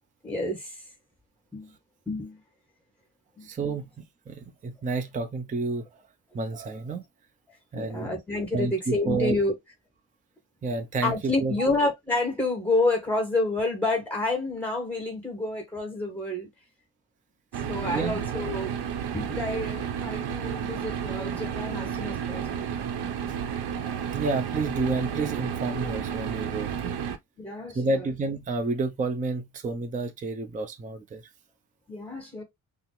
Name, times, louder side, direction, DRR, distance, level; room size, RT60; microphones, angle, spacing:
voice 1, 0.2-0.8 1.5-1.7 2.1-2.4 3.4-3.8 7.7-9.5 11.0-16.5 17.7-18.7 19.1-22.6 27.4-27.8 31.9-32.4, left 2 dB, 5° left, 1.9 m, -29 dB
voice 2, 3.4-5.8 6.3-7.0 7.7-8.1 8.5-9.4 10.6-11.5 17.8-18.2 23.8-26.9 27.7-31.2, right 3 dB, 20° right, 0.5 m, -30 dB
sound 1, 17.5-27.2, right 8 dB, 90° right, 0.8 m, -32 dB
5.8 x 2.1 x 3.1 m
wide cardioid pair, 180°, 39 cm